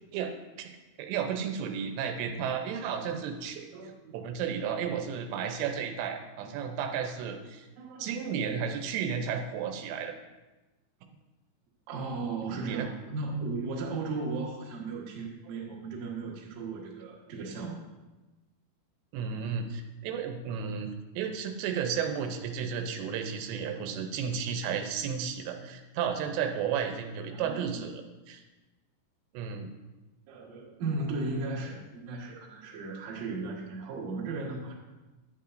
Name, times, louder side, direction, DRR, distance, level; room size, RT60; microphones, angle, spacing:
voice 1, 1.0-3.7 4.1-7.7 8.0-10.1 12.6-12.9 19.1-20.9 21.2-28.0 28.3-28.4 29.3-29.7, right 7 dB, 85° right, 5 dB, 2.9 m, -33 dB
voice 2, 3.7-4.2 6.4-6.5 7.8-8.1 11.9-17.8 23.7-24.1 27.3-27.8 30.3-34.8, right 3 dB, 60° right, -2 dB, 2.0 m, -36 dB
11.0 x 8.5 x 2.5 m, 1.1 s
omnidirectional pair, 4.9 m